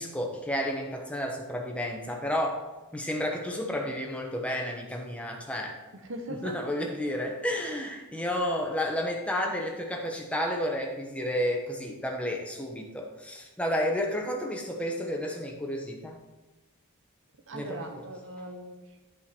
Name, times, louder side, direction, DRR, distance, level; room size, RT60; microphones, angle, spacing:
voice 1, 0.0-2.6 2.9-5.8 6.3-16.2 17.5-17.9, left 1 dB, 5° left, 0 dB, 1.0 m, -31 dB
voice 2, 5.9-6.7 17.5-19.0, right 1 dB, 60° right, 3 dB, 1.0 m, -40 dB
11.0 x 5.1 x 4.4 m, 1.2 s
head